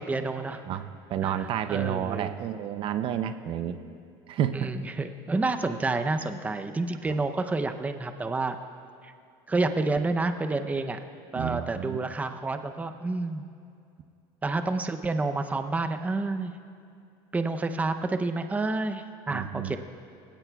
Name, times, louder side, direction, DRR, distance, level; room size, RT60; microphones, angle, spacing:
voice 1, 0.0-0.6 1.2-2.3 4.5-8.6 9.0-9.1 9.5-11.0 11.3-13.4 14.4-16.5 17.3-19.8, right 3 dB, 15° right, 8 dB, 0.6 m, -29 dB
voice 2, 0.7-3.8 4.3-4.7 11.3-12.0 19.3-19.8, right 10 dB, 50° right, 11 dB, 0.6 m, -30 dB
19.0 x 17.0 x 2.3 m, 2.5 s
supercardioid pair, 120°, 12 cm